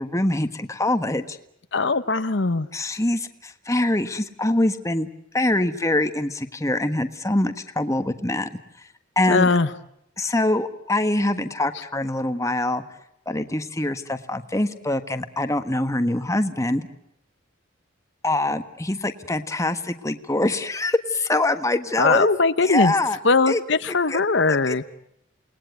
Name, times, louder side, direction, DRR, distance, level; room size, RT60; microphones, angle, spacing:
voice 1, 0.0-1.4 2.7-5.1 5.3-8.5 9.2-9.5 10.2-12.8 13.3-16.9 18.2-22.3 22.6-23.2 23.5-23.6 24.1-24.2 24.7-24.8, left 1 dB, 15° left, 8 dB, 1.4 m, -24 dB
voice 2, 1.7-2.7 9.3-9.7 22.0-22.9 23.2-24.8, left 3 dB, 60° left, 11 dB, 1.0 m, -20 dB
29.0 x 20.5 x 9.4 m, 0.77 s
head